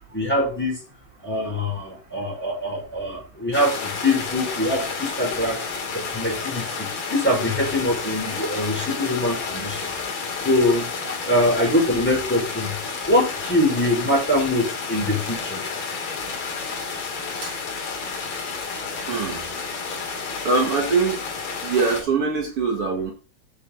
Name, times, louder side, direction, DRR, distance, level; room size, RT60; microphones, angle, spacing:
voice 1, 0.1-0.7 1.2-5.6 5.9-6.7 7.1-9.9 10.4-10.9 11.2-12.7 13.0-15.6, left 1 dB, ahead, -3 dB, 5.2 m, -23 dB
sound 1, 3.5-22.0, left 5 dB, 50° left, 4.0 m, -31 dB
voice 2, 19.1-19.4 20.0-21.2 21.6-23.1, right 4 dB, 90° right, 1 dB, 1.2 m, -23 dB
8.5 x 8.3 x 4.2 m, 0.32 s
omnidirectional pair, 5.9 m